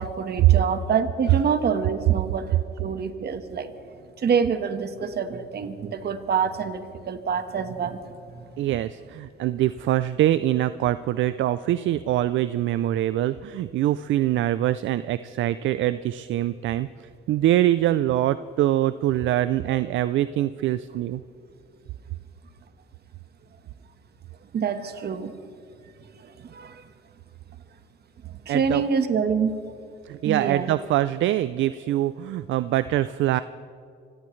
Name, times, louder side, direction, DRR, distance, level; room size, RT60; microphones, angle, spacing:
voice 1, 0.0-3.7 4.2-8.0 24.5-25.3 26.5-26.7 28.5-29.5 30.2-30.7, right 6 dB, 55° right, 9 dB, 1.3 m, -26 dB
voice 2, 8.6-21.2 28.5-28.8 30.0-33.4, right 13 dB, 75° right, 14 dB, 0.4 m, -24 dB
25.5 x 17.0 x 3.2 m, 2.5 s
cardioid pair, 90°, 20 cm